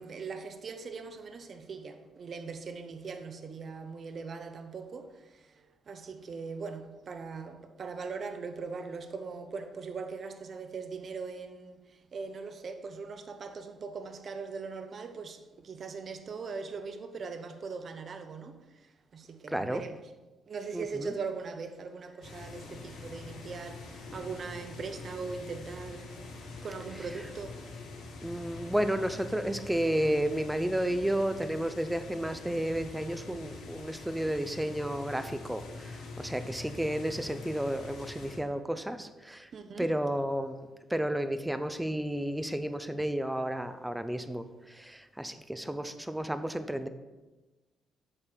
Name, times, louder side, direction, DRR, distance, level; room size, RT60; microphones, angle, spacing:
voice 1, 0.0-20.0 20.5-27.8 39.5-39.9, right 4 dB, 40° right, 0.7 m, -40 dB
voice 2, 19.5-19.8 20.7-21.1 28.2-39.5 39.8-46.9, right 1 dB, 5° right, 0.6 m, -32 dB
sound 1, 22.2-38.4, left 3 dB, 85° left, 3.1 m, -45 dB
8.7 x 6.5 x 4.4 m
cardioid pair, 130°, 0 cm